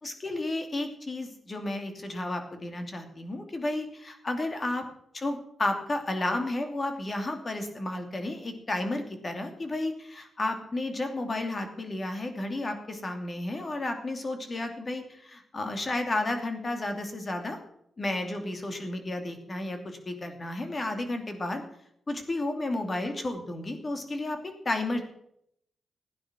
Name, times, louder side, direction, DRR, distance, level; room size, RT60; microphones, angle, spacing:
voice 1, 0.0-4.9 5.1-17.6 18.0-21.6 22.1-24.4 24.6-25.0, left 2 dB, 30° left, 5 dB, 2.6 m, -32 dB
16.0 x 9.6 x 6.1 m, 0.72 s
wide cardioid pair, 115°, 0 cm